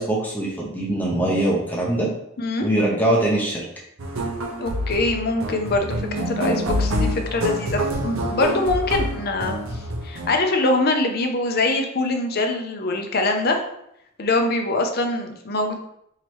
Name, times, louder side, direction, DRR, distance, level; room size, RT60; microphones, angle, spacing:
voice 1, 0.0-2.1 2.6-3.6, right 1 dB, 10° left, -4 dB, 0.7 m, -22 dB
sound 1, 4.0-10.3, equal, 90° right, 0.7 m, -26 dB
voice 2, 4.6-9.6 10.0-13.6 14.2-15.8, left 2 dB, 50° left, 4 dB, 0.5 m, -23 dB
3.1 x 2.8 x 4.5 m, 0.77 s
head